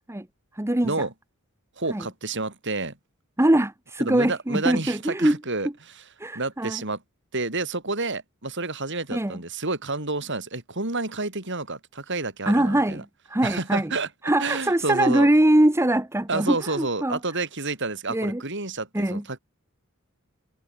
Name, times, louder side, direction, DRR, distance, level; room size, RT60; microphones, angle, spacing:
voice 1, 0.6-1.0 1.9-2.0 3.4-5.3 6.2-6.8 9.1-9.4 12.5-13.9 14.2-17.2 18.1-18.4 18.9-19.2, right 1 dB, 10° right, 0.9 m, -22 dB
voice 2, 1.8-3.0 4.0-5.7 5.9-6.0 6.3-7.0 7.3-13.0 13.4-14.1 14.4-15.3 16.3-19.4, right 3 dB, 60° right, 7.4 m, -29 dB
head